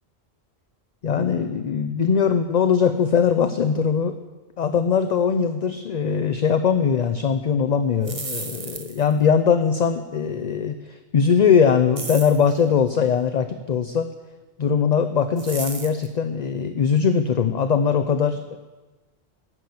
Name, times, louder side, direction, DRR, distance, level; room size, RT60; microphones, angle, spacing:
voice 1, 1.0-4.2 4.6-14.1 14.6-18.6, left 6 dB, 50° left, 9 dB, 0.6 m, -21 dB
sound 1, 7.9-9.2 12.0-12.5 15.4-16.1, right 4 dB, 35° right, 1.0 m, -34 dB
11.0 x 10.5 x 7.8 m, 1.2 s
omnidirectional pair, 1.1 m